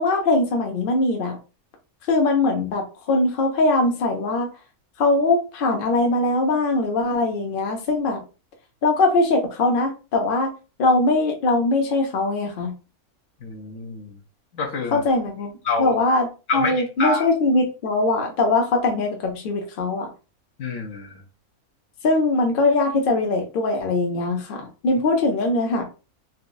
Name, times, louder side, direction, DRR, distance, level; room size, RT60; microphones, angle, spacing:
voice 1, 0.0-1.4 2.1-4.5 5.0-8.2 8.8-10.5 10.8-12.7 14.9-15.5 15.8-16.3 16.5-20.1 22.0-25.8, left 2 dB, 45° left, 2 dB, 0.8 m, -21 dB
voice 2, 13.4-14.1 14.5-15.0 15.6-16.0 16.5-17.3 20.6-21.2, left 3 dB, 65° left, 1 dB, 1.0 m, -27 dB
4.0 x 2.3 x 2.6 m, 0.32 s
omnidirectional pair, 1.5 m